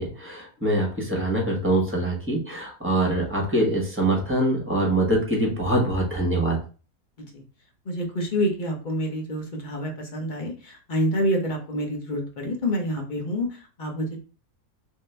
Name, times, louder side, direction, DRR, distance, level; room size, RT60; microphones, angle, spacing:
voice 1, 0.0-6.6, right 1 dB, 10° right, -2 dB, 1.0 m, -24 dB
voice 2, 7.9-13.5 13.8-14.2, equal, 40° left, 1 dB, 0.9 m, -27 dB
3.5 x 2.8 x 3.2 m, 0.36 s
omnidirectional pair, 1.6 m